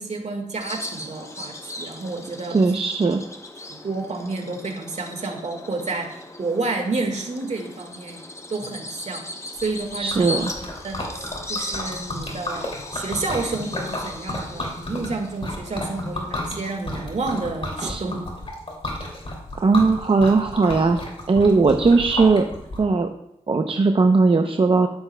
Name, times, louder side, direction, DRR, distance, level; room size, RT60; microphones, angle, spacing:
voice 1, 0.0-2.6 3.7-8.2 8.5-9.2 9.6-10.3 10.8-12.7 12.9-18.2, right 3 dB, 60° right, 3 dB, 1.7 m, -30 dB
Bird vocalization bird call bird song, 0.6-16.6, left 2 dB, 20° left, 0.9 m, -38 dB
voice 2, 2.5-3.2 10.0-10.5 17.8-18.0 19.6-21.0 21.3-22.5 22.8-23.1 23.5-24.9, right 4 dB, 40° right, 5 dB, 0.6 m, -18 dB
Liquid, 9.6-22.8, left 1 dB, 45° left, 2.6 m, -32 dB
13.5 x 7.0 x 2.3 m, 0.78 s
cardioid pair, 65°, 13 cm